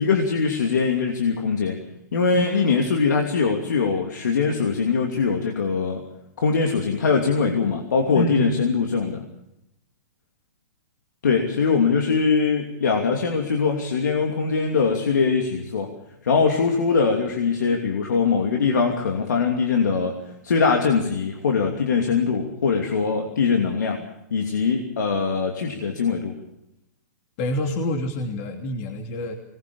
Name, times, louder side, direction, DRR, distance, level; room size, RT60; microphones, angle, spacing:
voice 1, 0.0-1.8 2.1-6.0 6.4-9.2 11.2-15.9 16.2-20.1 20.4-24.0 24.3-26.3, left 5 dB, 85° left, 2 dB, 2.9 m, -22 dB
voice 2, 8.1-8.5 27.4-29.3, left 1 dB, 45° left, 4 dB, 2.9 m, -27 dB
21.5 x 20.0 x 7.1 m, 0.84 s
hypercardioid pair, 140°, 9 cm